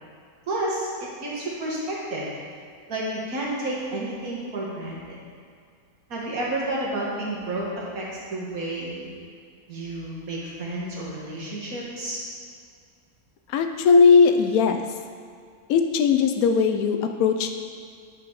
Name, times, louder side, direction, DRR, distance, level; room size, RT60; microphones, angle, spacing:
voice 1, 0.5-2.3 2.9-5.0 6.1-8.1 8.3-9.1 9.7-12.2, right 1 dB, 70° right, -5 dB, 2.0 m, -30 dB
voice 2, 13.5-14.8 15.7-17.6, left 5 dB, 75° left, 6 dB, 1.0 m, -19 dB
9.5 x 4.9 x 4.7 m, 2.2 s
omnidirectional pair, 1.6 m